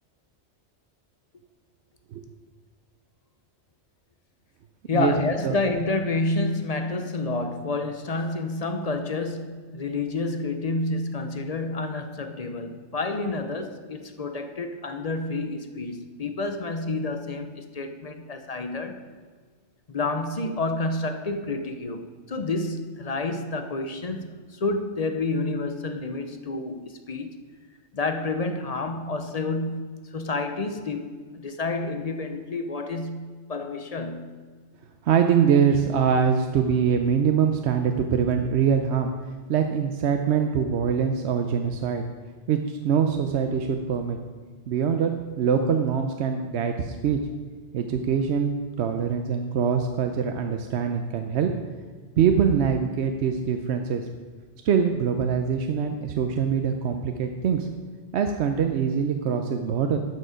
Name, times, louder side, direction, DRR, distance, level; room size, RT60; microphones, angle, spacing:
voice 1, 4.9-19.0 19.9-27.4 27.9-34.4, left 3 dB, 40° left, 0.7 m, -29 dB
voice 2, 35.0-39.1 39.5-42.0 42.5-44.2 44.7-47.2 47.7-51.5 52.2-54.1 54.6-57.7 58.1-60.0, right 7 dB, 75° right, 0.9 m, -23 dB
11.5 x 6.6 x 5.1 m
omnidirectional pair, 1.2 m